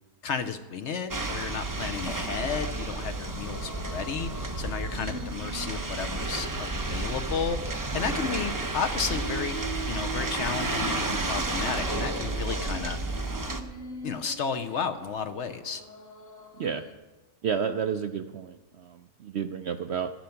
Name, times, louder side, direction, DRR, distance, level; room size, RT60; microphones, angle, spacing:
voice 1, 0.2-4.3 4.6-7.6 7.9-9.6 9.9-13.0 14.0-15.8, left 6 dB, 60° left, 10 dB, 0.8 m, -33 dB
sound 1, 1.1-13.6, right 2 dB, 25° right, 0.4 m, -31 dB
sound 2, 1.9-16.9, right 2 dB, 40° left, 1.8 m, -43 dB
voice 2, 17.4-20.1, right 7 dB, 70° right, 8 dB, 0.6 m, -31 dB
13.0 x 10.5 x 5.8 m, 1.2 s
omnidirectional pair, 1.6 m